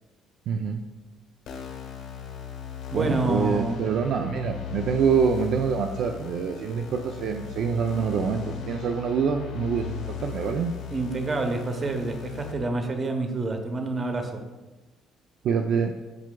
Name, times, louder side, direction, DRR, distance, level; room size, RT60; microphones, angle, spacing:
voice 1, 0.5-0.8 2.9-10.7 15.4-15.9, right 6 dB, 55° right, 4 dB, 0.4 m, -26 dB
sound 1, 1.5-12.5, left 8 dB, 75° left, 1.4 m, -37 dB
voice 2, 2.9-3.8 10.9-14.4, right 2 dB, 25° right, 5 dB, 0.8 m, -28 dB
12.0 x 4.7 x 2.2 m, 1.2 s
cardioid pair, 145°, 0 cm